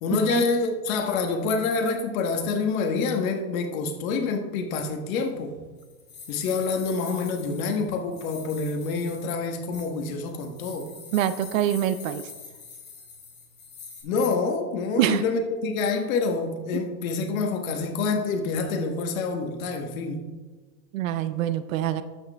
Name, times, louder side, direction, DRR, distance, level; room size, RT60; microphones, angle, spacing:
voice 1, 0.0-5.5 6.3-10.9 14.0-20.3, left 4 dB, 55° left, 4 dB, 1.3 m, -27 dB
sound 1, 5.1-14.0, left 5 dB, 20° left, 2.9 m, -45 dB
voice 2, 11.1-12.2 15.0-15.2 20.9-22.0, right 11 dB, 55° right, 13 dB, 0.6 m, -25 dB
12.5 x 6.3 x 3.4 m, 1.3 s
supercardioid pair, 150°, 50 cm